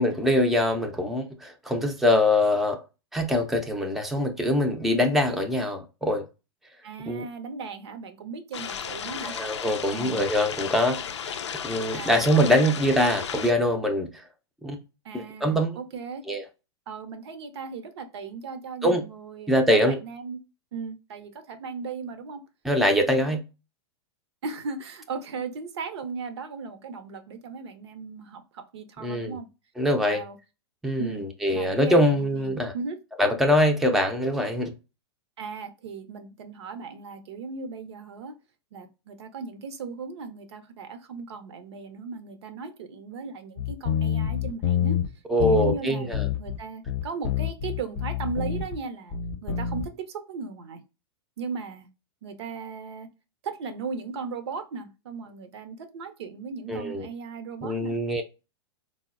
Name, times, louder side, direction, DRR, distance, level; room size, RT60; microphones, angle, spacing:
voice 1, 0.0-2.8 3.1-6.3 7.1-7.3 9.3-11.0 11.2-11.4 11.6-14.1 14.6-14.8 15.1-15.8 16.3-16.4 18.8-19.0 19.5-20.0 22.6-23.4 29.0-29.4 29.8-30.2 30.8-32.7 33.2-34.7 45.3-46.3 56.7-57.1 57.6-58.2, left 1 dB, ahead, 0.5 m, -23 dB
voice 2, 6.8-9.3 9.9-10.3 11.9-12.7 15.0-16.2 16.9-20.4 20.7-22.4 22.8-23.4 24.4-29.5 30.0-30.4 31.0-31.2 31.5-33.0 35.4-38.3 38.7-45.0 45.4-50.8 51.4-51.9 52.2-53.1 53.4-58.0, right 5 dB, 70° right, 0.6 m, -37 dB
sound 1, 8.5-13.5, left 7 dB, 85° left, 0.4 m, -34 dB
sound 2, 43.6-45.1 45.4-45.8 46.1-46.6 46.9-48.8 49.1-49.9, left 9 dB, 40° left, 0.6 m, -27 dB
3.8 x 2.1 x 2.4 m
hypercardioid pair, 110°, 14 cm